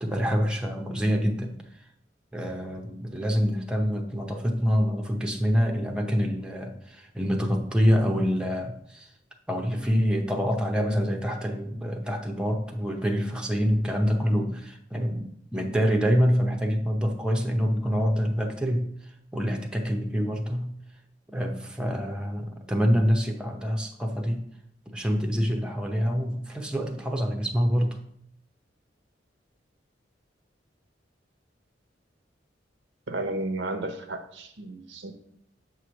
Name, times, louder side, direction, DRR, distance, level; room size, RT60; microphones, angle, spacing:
voice 1, 0.0-1.5 2.3-9.1 9.5-18.9 19.3-20.7 21.3-24.5 24.9-28.0, equal, 5° right, 2 dB, 0.7 m, -26 dB
voice 2, 33.1-35.1, right 2 dB, 70° right, 6 dB, 0.8 m, -33 dB
7.5 x 3.1 x 6.2 m, 0.70 s
head